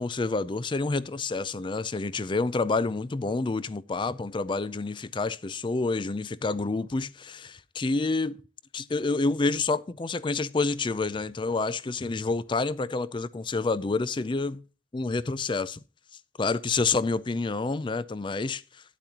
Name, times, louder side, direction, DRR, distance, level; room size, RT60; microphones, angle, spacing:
voice 1, 0.0-8.4 8.7-14.6 14.9-15.8 16.4-18.6, left 3 dB, 25° left, 0.4 m, -28 dB
12.5 x 9.9 x 2.9 m
head